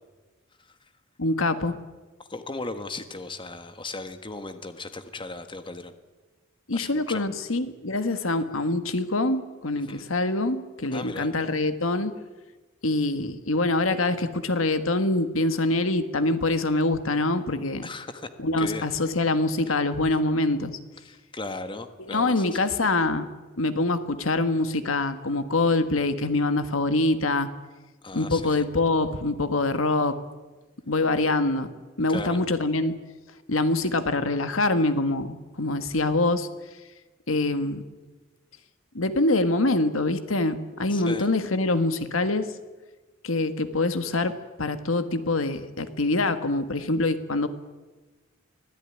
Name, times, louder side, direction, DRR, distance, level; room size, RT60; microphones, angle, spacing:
voice 1, 1.2-1.8 6.7-12.1 12.8-17.9 18.4-20.7 22.0-23.3 23.6-27.5 28.1-30.2 30.9-31.7 32.0-32.9 33.5-36.5 37.3-37.8 38.9-42.5 43.2-47.5, left 2 dB, 85° left, 10 dB, 1.7 m, -25 dB
voice 2, 2.2-5.9 6.7-7.2 9.8-10.0 10.9-11.3 17.8-18.3 18.6-18.9 21.0-22.7 28.0-28.6 32.1-32.4 40.9-41.3, left 3 dB, 25° left, 9 dB, 1.4 m, -37 dB
24.5 x 16.5 x 10.0 m, 1.2 s
head